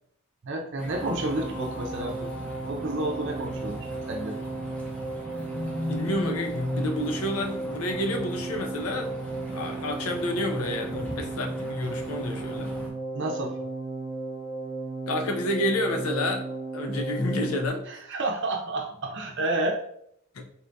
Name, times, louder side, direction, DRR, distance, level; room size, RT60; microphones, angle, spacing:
voice 1, 0.4-2.3 2.7-4.4 13.1-13.6 17.9-19.8, right 2 dB, 60° right, 1 dB, 0.7 m, -30 dB
sound 1, 0.8-12.9, left 1 dB, 5° left, 0.9 m, -39 dB
sound 2, 0.9-17.7, right 3 dB, 15° right, 0.3 m, -35 dB
voice 2, 5.9-9.1 9.5-12.7 15.1-16.5 16.7-17.8 20.3-20.5, left 1 dB, 80° left, 4 dB, 0.6 m, -29 dB
4.2 x 3.4 x 2.6 m, 0.70 s
head